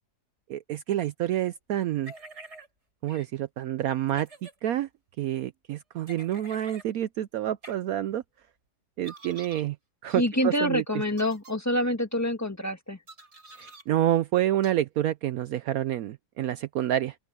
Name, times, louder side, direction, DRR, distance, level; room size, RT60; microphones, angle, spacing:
voice 1, 0.5-2.1 3.0-4.9 5.2-8.2 9.0-9.8 10.0-10.8 13.6-17.2, right 12 dB, 70° right, 0.9 m, -28 dB
sound 1, 2.0-2.7 3.1-3.3 4.1-4.5 6.1-6.9 7.6-7.7 9.0-9.7 10.1-10.3 11.1-11.5 13.1-13.8 14.6-14.7, right 1 dB, 40° right, 5.6 m, -47 dB
voice 2, 10.2-13.0, left 1 dB, 10° left, 1.4 m, -26 dB
open air
omnidirectional pair, 1.8 m